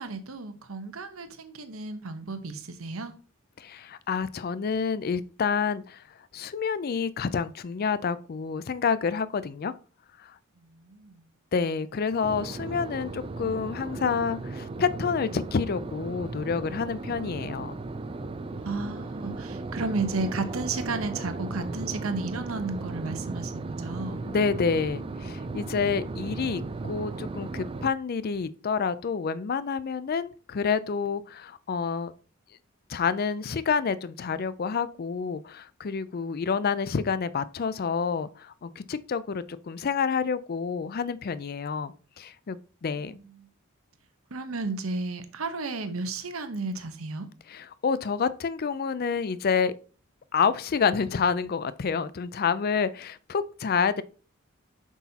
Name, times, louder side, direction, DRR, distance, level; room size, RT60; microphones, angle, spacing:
voice 1, 0.0-3.1 10.6-11.2 18.6-24.2 44.3-47.3, right 3 dB, 80° right, 1.0 m, -33 dB
voice 2, 3.6-6.0 6.3-9.7 10.2-10.3 11.5-17.8 24.3-32.1 32.9-43.2 47.5-49.7 50.3-54.0, left 5 dB, 45° left, 0.4 m, -28 dB
sound 1, 12.2-27.9, right 3 dB, 25° right, 0.4 m, -36 dB
7.9 x 6.1 x 2.8 m
head